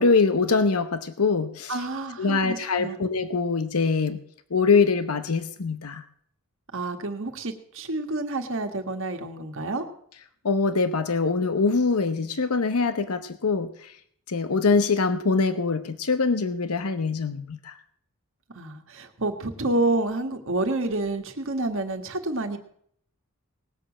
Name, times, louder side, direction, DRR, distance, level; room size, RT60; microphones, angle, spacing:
voice 1, 0.0-1.8 2.2-4.2 4.5-6.0 10.4-13.9 14.3-17.7, left 4 dB, 80° left, 11 dB, 0.9 m, -23 dB
voice 2, 1.7-3.0 6.7-9.8 18.5-22.6, right 2 dB, 60° right, 5 dB, 1.6 m, -29 dB
18.5 x 6.9 x 7.3 m, 0.65 s
head